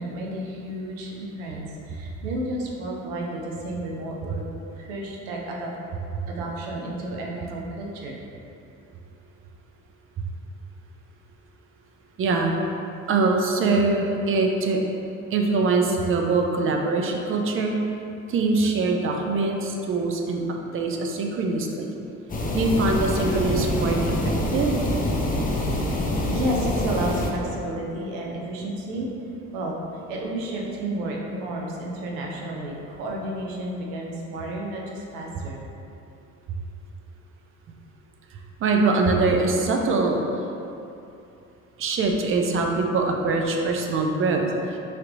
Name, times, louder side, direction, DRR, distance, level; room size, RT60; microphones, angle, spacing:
voice 1, 0.0-4.4 4.7-5.7 6.3-8.2 26.3-29.1 29.5-35.7, right 1 dB, 70° right, -2 dB, 0.6 m, -31 dB
voice 2, 12.2-12.5 13.1-14.8 15.3-17.8 18.3-20.4 20.7-21.9 22.5-24.7 38.6-40.2 41.8-44.8, right 3 dB, 35° right, 1 dB, 0.4 m, -23 dB
sound 1, 22.3-27.3, left 1 dB, 20° left, 0.5 m, -25 dB
3.2 x 2.9 x 2.5 m, 2.7 s
hypercardioid pair, 50°, 41 cm